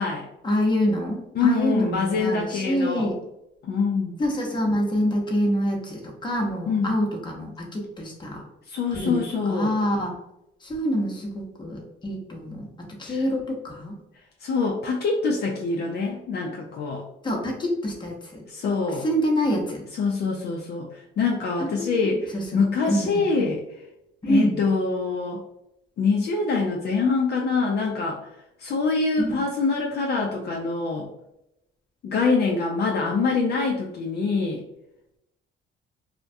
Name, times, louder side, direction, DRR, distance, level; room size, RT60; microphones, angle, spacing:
voice 1, 0.4-3.2 4.2-8.4 8.9-9.2 9.5-10.1 10.6-14.0 17.2-18.4 18.9-19.8 21.6-23.2 24.2-24.6 29.2-29.4, equal, 25° left, -1 dB, 0.7 m, -26 dB
voice 2, 1.4-3.1 3.6-4.2 6.7-6.9 8.7-9.8 13.0-13.2 14.4-17.1 18.5-19.1 20.0-23.6 24.3-25.4 26.0-28.2 28.6-31.1 32.0-34.6, left 4 dB, 55° left, -1 dB, 0.4 m, -25 dB
2.2 x 2.1 x 2.6 m, 0.85 s
cardioid pair, 90°, 20 cm